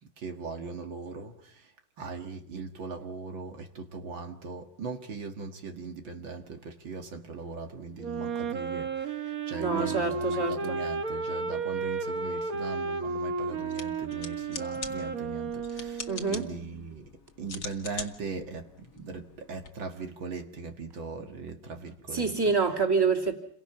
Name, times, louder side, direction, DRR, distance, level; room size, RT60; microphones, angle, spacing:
voice 1, 0.0-1.7 2.0-17.1 17.4-22.5, right 4 dB, 70° right, 2.6 m, -39 dB
Wind instrument woodwind instrument, 8.0-16.4, right 4 dB, 45° right, 1.8 m, -33 dB
voice 2, 9.6-10.8 16.1-16.5 22.1-23.4, right 4 dB, 10° right, 2.9 m, -27 dB
sound 1, 13.6-19.7, left 5 dB, 50° left, 2.3 m, -44 dB
29.0 x 23.0 x 6.0 m
omnidirectional pair, 2.2 m